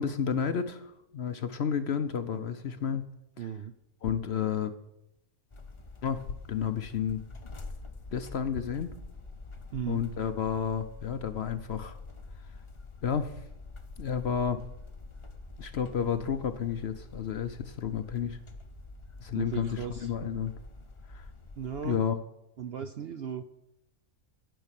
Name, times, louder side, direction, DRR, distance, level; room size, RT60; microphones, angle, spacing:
voice 1, 0.0-3.1 3.4-3.5 4.0-4.7 6.0-7.2 8.1-8.9 9.9-12.0 13.0-13.4 14.0-14.6 15.6-18.4 19.2-20.5 21.1-21.3 21.8-22.2, left 7 dB, 55° left, 10 dB, 0.8 m, -31 dB
voice 2, 3.4-3.7 9.7-10.0 19.3-20.3 21.6-22.0 22.6-23.4, right 8 dB, 60° right, 9 dB, 0.6 m, -36 dB
sound 1, 3.8-9.9, left 6 dB, 75° left, 1.4 m, -48 dB
sound 2, 5.5-21.9, left 3 dB, 25° left, 0.8 m, -46 dB
12.5 x 5.5 x 9.0 m, 0.85 s
omnidirectional pair, 1.6 m